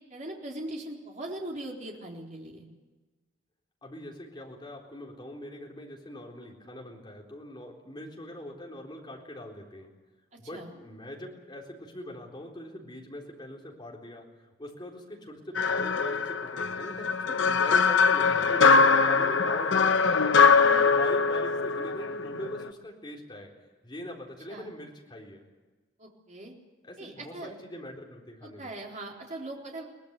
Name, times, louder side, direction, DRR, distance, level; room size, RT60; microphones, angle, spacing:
voice 1, 0.1-2.6 10.5-10.7 20.6-20.9 24.5-24.7 26.0-26.5 27.0-27.5 28.4-29.8, right 1 dB, 40° right, -1 dB, 3.9 m, -40 dB
voice 2, 3.8-9.9 10.4-14.3 14.6-20.4 20.8-23.5 23.8-25.4 26.8-28.7, left 1 dB, 25° left, -1 dB, 4.0 m, -42 dB
sound 1, 15.5-22.7, left 5 dB, 65° left, 0.9 m, -22 dB
22.5 x 19.0 x 8.3 m, 1.2 s
head